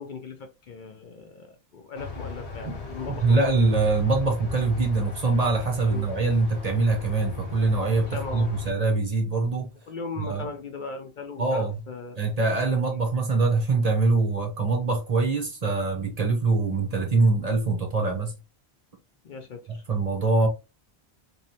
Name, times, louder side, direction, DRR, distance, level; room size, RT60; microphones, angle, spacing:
voice 1, 0.0-3.4 5.9-6.0 8.1-8.5 9.9-12.2 19.2-19.8, left 4 dB, 55° left, 0.6 m, -38 dB
sound 1, 1.9-8.7, left 3 dB, 90° left, 1.1 m, -38 dB
voice 2, 3.1-9.7 10.2-10.4 11.4-11.8 12.2-18.3 19.9-20.5, right 3 dB, 40° right, 0.7 m, -23 dB
3.0 x 2.7 x 2.7 m
omnidirectional pair, 1.1 m